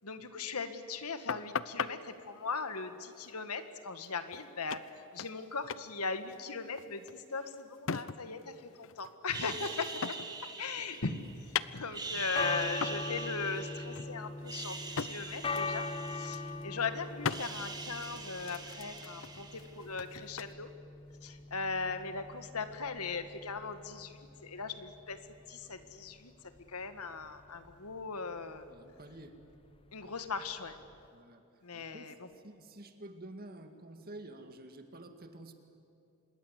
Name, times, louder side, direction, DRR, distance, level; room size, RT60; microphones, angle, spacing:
voice 1, 0.0-4.8 5.1-11.2 11.7-20.7 21.2-25.2 25.5-26.3 26.7-28.7 29.9-30.8 31.6-32.1, left 4 dB, 90° left, 10 dB, 1.7 m, -39 dB
sound 1, 1.3-1.9 4.0-4.1 4.3-4.4 4.7-5.4 5.7-5.9 6.2-8.4 8.7-10.4 10.8-12.2 12.8-13.1 13.4-13.6 13.9-15.2 15.6-15.8 16.1-16.6 17.2-17.5 18.0-20.5, left 6 dB, 60° left, 0.7 m, -39 dB
sound 2, 9.3-11.4 11.8-14.0 14.4-16.8 17.0-19.9, right 4 dB, 20° right, 2.0 m, -43 dB
sound 3, 12.2-31.0, left 3 dB, 25° left, 0.8 m, -42 dB
voice 2, 28.7-29.3 31.1-32.1 32.3-35.5, right 1 dB, 45° right, 7 dB, 2.1 m, -50 dB
26.0 x 21.5 x 8.2 m, 2.8 s
head